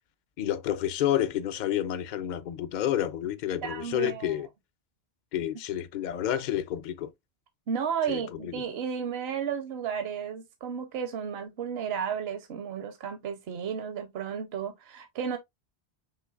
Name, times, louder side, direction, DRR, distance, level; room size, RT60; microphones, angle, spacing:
voice 1, 0.4-4.5 5.3-7.1 8.1-8.6, left 11 dB, 55° left, 0.6 m, -30 dB
voice 2, 3.6-4.3 7.7-15.4, right 7 dB, 75° right, 0.9 m, -33 dB
5.6 x 3.3 x 2.3 m
omnidirectional pair, 1.1 m